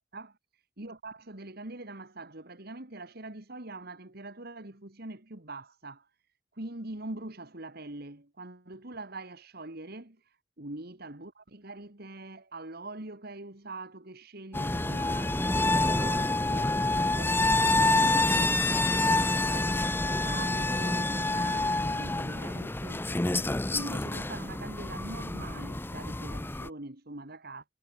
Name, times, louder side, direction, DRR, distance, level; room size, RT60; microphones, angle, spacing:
voice 1, 0.8-6.1 6.5-23.4 23.7-27.6, right 2 dB, 50° right, 2.4 m, -43 dB
sound 1, 14.5-26.7, left 2 dB, 10° left, 0.6 m, -27 dB
head